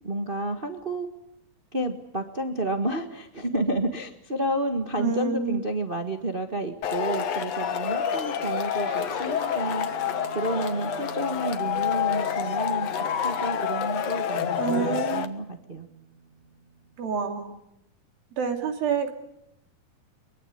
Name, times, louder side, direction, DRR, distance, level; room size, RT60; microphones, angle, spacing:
voice 1, 0.0-1.1 1.7-9.9 10.3-12.9 13.2-15.9, right 1 dB, 70° right, 5 dB, 0.5 m, -30 dB
voice 2, 5.0-5.6 14.6-15.4 17.0-17.6 18.4-19.1, right 6 dB, 90° right, 5 dB, 4.6 m, -28 dB
Male speech man speaking / Shout / Clapping, 6.8-15.3, left 9 dB, 55° left, 2.3 m, -28 dB
Guitar, 8.8-17.6, right 6 dB, 45° right, 3.0 m, -46 dB
23.0 x 22.5 x 9.8 m, 0.80 s
omnidirectional pair, 4.0 m